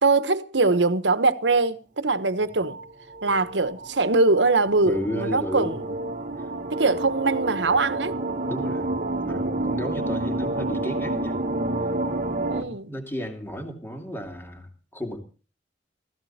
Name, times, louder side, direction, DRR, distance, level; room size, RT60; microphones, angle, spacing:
voice 1, 0.0-2.8 3.2-5.8 6.7-8.2 12.5-12.9, right 3 dB, 90° right, 1.2 m, -22 dB
sound 1, 2.4-12.6, right 2 dB, 45° right, 1.4 m, -29 dB
voice 2, 4.8-5.8 8.5-9.0 9.3-11.4 12.6-15.2, equal, 15° left, 2.8 m, -33 dB
15.5 x 15.5 x 4.3 m
head